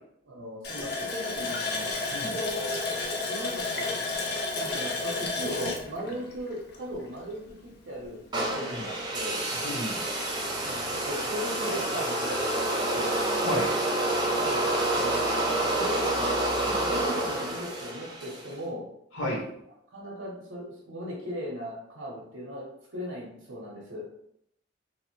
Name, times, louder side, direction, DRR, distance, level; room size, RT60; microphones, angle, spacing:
voice 1, 0.3-1.9 2.3-2.8 3.3-3.9 4.5-7.4 7.9-8.2 8.5-9.4 10.6-13.1 14.4-14.7 14.9-16.4 16.8-18.9 19.9-22.7 22.9-24.0, equal, 80° right, -4 dB, 0.7 m, -37 dB
Water tap faucet, 0.6-7.1 7.5-7.6 8.0-8.2, left 3 dB, 50° left, 0.4 m, -32 dB
sound 1, 8.3-18.5, right 1 dB, 20° right, 0.4 m, -28 dB
voice 2, 9.6-10.0 13.4-13.7 16.6-16.8 19.1-19.4, left 1 dB, 85° left, -4 dB, 1.0 m, -32 dB
2.8 x 2.0 x 2.9 m, 0.74 s
head